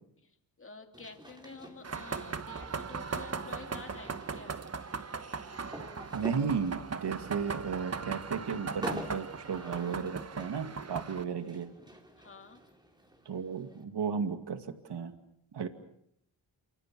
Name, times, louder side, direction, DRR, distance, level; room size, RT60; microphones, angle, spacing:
voice 1, 0.3-4.6 12.2-12.6, left 4 dB, 30° left, 5 dB, 3.0 m, -49 dB
sound 1, 0.9-13.8, equal, 10° right, 3.8 m, -48 dB
sound 2, 1.8-11.2, right 5 dB, 35° right, 1.2 m, -39 dB
voice 2, 6.1-11.7 13.3-15.1 15.5-15.7, right 6 dB, 65° right, 7 dB, 2.3 m, -34 dB
29.0 x 26.5 x 6.2 m, 0.72 s
wide cardioid pair, 105°, 44 cm